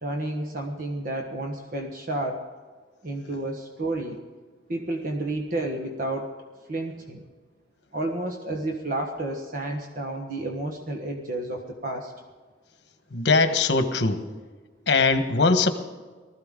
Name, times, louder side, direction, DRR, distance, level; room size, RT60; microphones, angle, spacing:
voice 1, 0.0-2.5 3.0-4.2 4.7-6.3 6.7-7.2 7.9-12.1, right 2 dB, 50° right, 3 dB, 1.3 m, -31 dB
voice 2, 13.1-14.2 14.9-15.7, left 3 dB, 65° left, 8 dB, 1.2 m, -21 dB
19.5 x 14.0 x 3.8 m, 1.4 s
head